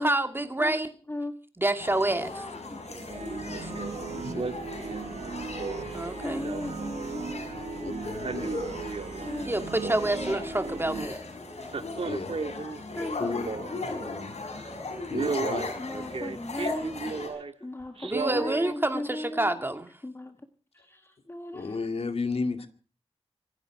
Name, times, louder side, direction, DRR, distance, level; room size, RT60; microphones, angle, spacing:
voice 1, 0.0-0.9 1.6-2.3 3.6-3.7 5.9-6.4 9.4-11.2 18.0-19.9, right 1 dB, 20° right, 7 dB, 2.4 m, -28 dB
sound 1, 1.8-17.3, left 3 dB, 85° left, 6.4 m, -38 dB
voice 2, 2.2-2.8 6.2-8.0 9.2-9.6 10.0-11.1 12.9-14.0 15.8-19.6 20.0-20.4 20.7-21.8, left 1 dB, 20° left, 6 dB, 1.7 m, -38 dB
Male speech man speaking, 2.9-3.1 3.5-4.0 4.4-7.6 8.0-9.4 9.6-10.5 11.6-14.0 14.4-14.7 15.1-17.5 18.0-18.7 19.2-19.3, right 4 dB, 60° right, 1.6 m, -35 dB
sound 2, 3.1-11.1, right 5 dB, 85° right, 0.9 m, -38 dB
voice 3, 3.7-4.5 7.5-8.8 12.0-12.4 13.2-14.4 15.1-15.8 21.5-22.7, left 4 dB, 65° left, 7 dB, 2.2 m, -34 dB
25.5 x 11.0 x 4.8 m, 0.39 s
wide cardioid pair, 80°, 11 cm